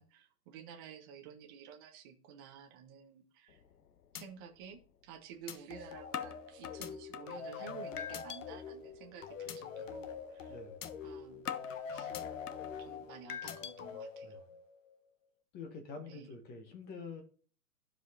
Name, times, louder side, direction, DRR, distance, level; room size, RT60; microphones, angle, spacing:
voice 1, 0.0-3.6 4.1-10.5 11.0-11.4 11.9-12.1 12.8-14.4 16.1-16.3, right 7 dB, 15° right, 0.5 m, -52 dB
sound 1, 3.5-3.8 4.1-4.2 4.7-4.8 5.5-5.6 6.1-7.4 8.0-8.4 8.8-9.1 9.5-9.6 10.0-10.2 10.8-10.9 11.5-12.7 13.3-13.7, left 9 dB, 80° left, 0.8 m, -42 dB
sound 2, 5.7-14.9, left 6 dB, 55° left, 1.2 m, -45 dB
voice 2, 10.5-10.9 14.2-14.5 15.5-17.2, left 4 dB, 20° left, 1.2 m, -47 dB
14.5 x 4.9 x 2.4 m
hypercardioid pair, 125°, 47 cm